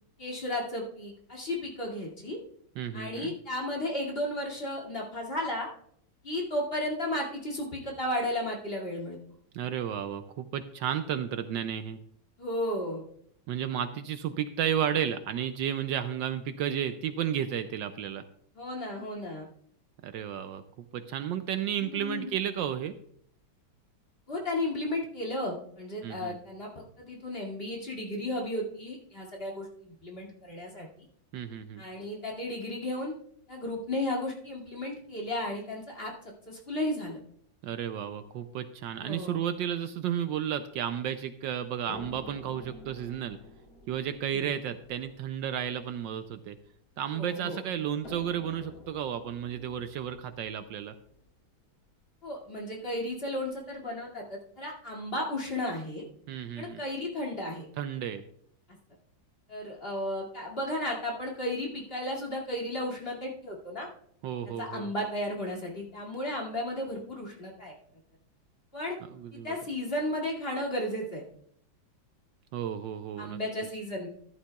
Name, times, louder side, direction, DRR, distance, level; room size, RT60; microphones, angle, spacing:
voice 1, 0.2-2.4 2.9-5.7 6.2-9.2 12.4-13.0 18.5-19.5 21.8-22.3 24.3-30.9 31.8-33.1 33.5-36.1 36.5-37.2 39.0-39.4 44.3-44.5 47.2-47.6 52.2-56.0 56.6-57.7 59.5-63.9 64.6-67.7 68.7-69.0 69.3-71.2 73.2-74.1, left 1 dB, 30° left, -2 dB, 2.5 m, -34 dB
voice 2, 2.8-3.3 9.5-12.0 13.5-18.2 20.0-20.6 20.9-22.9 26.0-26.4 31.3-31.8 37.6-43.4 43.9-46.6 47.0-50.9 56.3-56.8 57.8-58.2 64.2-64.9 69.1-69.6 72.5-73.4, right 9 dB, 75° right, 9 dB, 1.2 m, -32 dB
sound 1, 41.9-47.1 48.0-52.0 53.0-53.1 53.5-53.6, left 1 dB, 85° left, 5.4 m, -50 dB
14.0 x 11.0 x 2.3 m, 0.66 s
omnidirectional pair, 2.2 m